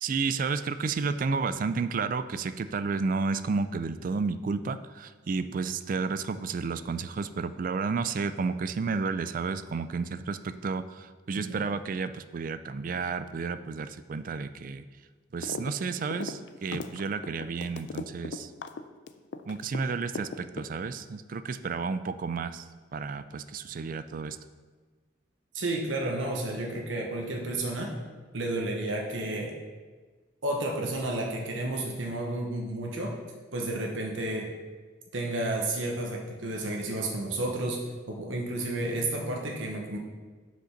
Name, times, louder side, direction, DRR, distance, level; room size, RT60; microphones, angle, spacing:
voice 1, 0.0-14.9 15.3-18.5 19.5-22.7 22.9-24.4, right 4 dB, 45° right, 12 dB, 0.3 m, -31 dB
sound 1, 15.4-15.7 16.0-19.8 20.2-21.0, left 4 dB, 65° left, 0.4 m, -37 dB
voice 2, 25.5-28.0 28.3-29.6 30.4-33.2 33.5-34.5 35.1-40.0, right 2 dB, 85° right, 0 dB, 1.0 m, -31 dB
6.5 x 5.2 x 5.8 m, 1.4 s
head